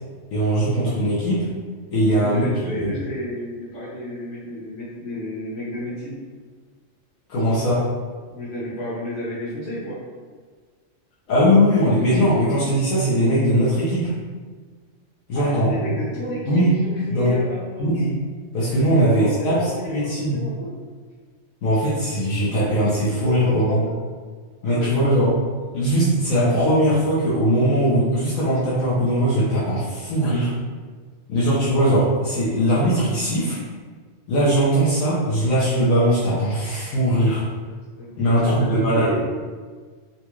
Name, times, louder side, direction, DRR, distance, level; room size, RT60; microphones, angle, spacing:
voice 1, 0.3-1.5 1.9-2.4 2.8-3.0 7.3-7.8 11.3-14.1 15.3-15.7 16.5-16.8 17.1-17.4 17.8-18.2 18.5-20.4 21.6-23.8 24.6-25.3 25.7-30.5 31.3-33.6 34.3-37.4 38.2-39.1, equal, 90° left, -9 dB, 1.2 m, -20 dB
voice 2, 2.0-6.2 8.3-10.0 15.3-18.0 18.9-20.7 23.2-23.3 24.6-25.1 30.2-30.3 38.0-39.2, equal, 65° left, -8 dB, 1.6 m, -32 dB
4.0 x 2.3 x 3.0 m, 1.5 s
omnidirectional pair, 1.4 m